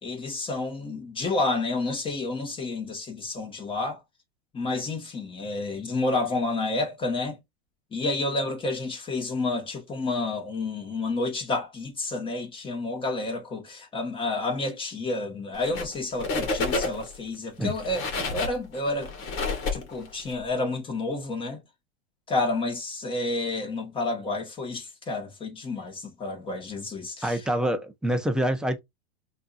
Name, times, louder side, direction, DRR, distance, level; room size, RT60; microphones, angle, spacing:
voice 1, 0.0-4.0 4.5-7.4 7.9-19.1 19.7-21.6 22.3-27.4, left 2 dB, 15° left, 1.7 m, -30 dB
sound 1, 15.5-15.9 16.2-17.2 17.7-20.3, left 3 dB, 40° left, 1.9 m, -29 dB
voice 2, 27.2-28.8, right 1 dB, ahead, 0.6 m, -26 dB
5.2 x 2.8 x 2.6 m
supercardioid pair, 135°, 32 cm